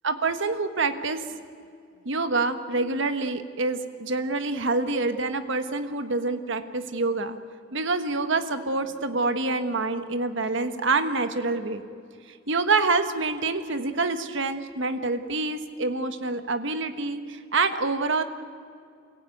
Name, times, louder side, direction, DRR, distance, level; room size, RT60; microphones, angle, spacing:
voice 1, 0.0-1.2 2.0-7.4 7.7-11.8 12.3-18.2, right 3 dB, 60° right, 9 dB, 1.4 m, -26 dB
28.5 x 16.0 x 9.3 m, 2.3 s
head